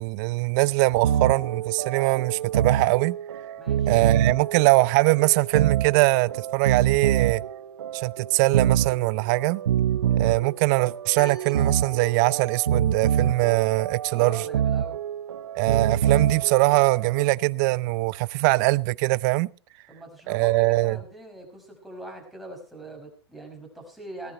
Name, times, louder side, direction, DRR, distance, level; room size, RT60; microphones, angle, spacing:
voice 1, 0.0-3.2 3.9-7.4 7.9-9.6 10.2-14.4 15.6-19.5 20.3-21.0, right 23 dB, 40° right, 0.6 m, -22 dB
sound 1, 0.9-17.2, right 9 dB, 80° right, 1.0 m, -26 dB
voice 2, 3.6-3.9 14.1-15.0 19.9-24.3, right 2 dB, ahead, 5.6 m, -42 dB
sound 2, 11.1-12.6, left 2 dB, 65° left, 7.3 m, -45 dB
19.0 x 11.0 x 4.4 m
hypercardioid pair, 130°, 14 cm